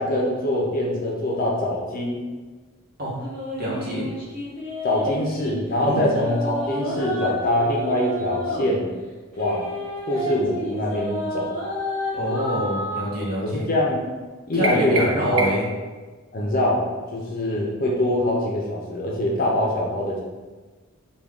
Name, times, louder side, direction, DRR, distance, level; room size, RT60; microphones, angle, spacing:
voice 1, 0.0-2.2 4.8-8.9 9.4-9.7 10.1-11.5 13.4-14.0 14.5-15.4 16.3-16.8 17.1-20.2, left 1 dB, 40° left, -2 dB, 0.5 m, -23 dB
sound 1, 3.1-5.6 6.0-8.7 9.3-13.0, left 1 dB, 5° left, 1.2 m, -30 dB
voice 2, 3.6-4.1 5.8-6.0 12.1-13.7 14.5-15.7, equal, 45° right, -7 dB, 1.1 m, -26 dB
sound 2, 14.6-15.8, right 2 dB, 75° right, 0.4 m, -27 dB
3.5 x 2.3 x 3.5 m, 1.3 s
head